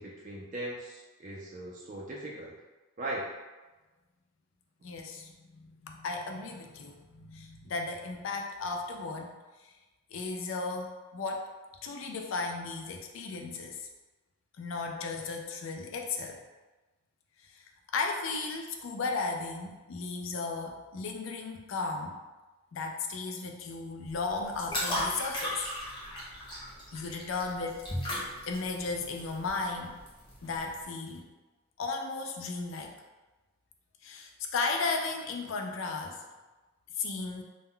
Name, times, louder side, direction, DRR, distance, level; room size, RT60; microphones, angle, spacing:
voice 1, 0.0-2.5 3.0-3.3, right 1 dB, 35° right, -4 dB, 0.3 m, -39 dB
voice 2, 4.8-9.3 9.6-9.7 10.1-11.5 11.8-13.9 14.6-16.4 17.5-17.6 17.9-22.2 22.7-25.6 26.9-27.8 28.5-30.0 30.4-31.3 31.8-32.9 34.0-36.2 37.0-37.4, left 3 dB, 60° left, 3 dB, 0.4 m, -35 dB
sound 1, 24.1-30.8, left 1 dB, 25° left, 0.7 m, -37 dB
2.1 x 2.1 x 3.6 m, 1.2 s
head